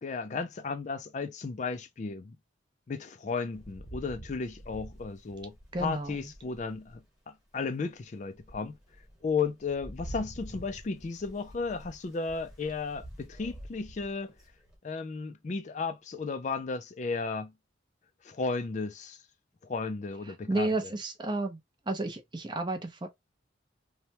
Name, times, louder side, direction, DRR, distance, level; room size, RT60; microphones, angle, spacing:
voice 1, 0.0-2.4 2.9-8.8 9.2-14.3 14.8-17.5 18.2-19.2 19.6-20.7, left 4 dB, 40° left, 0.3 m, -34 dB
Rain, 3.5-7.1 7.6-7.7 8.2-14.8, equal, 5° right, 1.1 m, -47 dB
voice 2, 5.7-6.3 20.2-21.6 21.9-23.1, right 2 dB, 25° right, 0.5 m, -32 dB
3.1 x 2.2 x 2.7 m
head